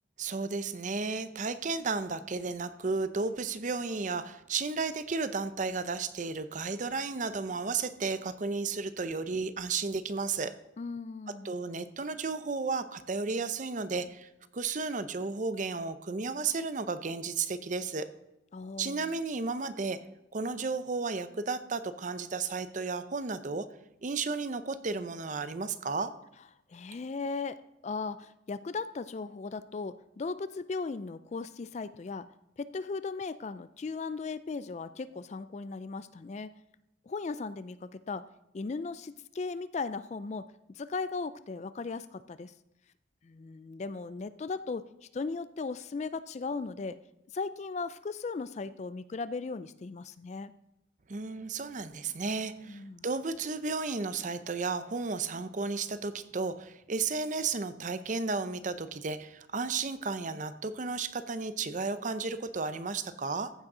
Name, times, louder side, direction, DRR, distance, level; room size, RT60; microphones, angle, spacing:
voice 1, 0.2-10.5 11.3-18.1 18.8-20.0 20.3-23.7 24.0-26.1 51.1-63.5, right 4 dB, 40° right, 12 dB, 0.6 m, -33 dB
voice 2, 10.8-11.5 18.5-19.1 26.7-27.6 27.8-32.3 32.6-36.5 37.1-38.3 38.5-42.5 43.2-47.0 47.3-50.5 52.7-53.1, left 4 dB, 35° left, 14 dB, 0.3 m, -37 dB
14.5 x 6.3 x 4.9 m, 0.90 s
head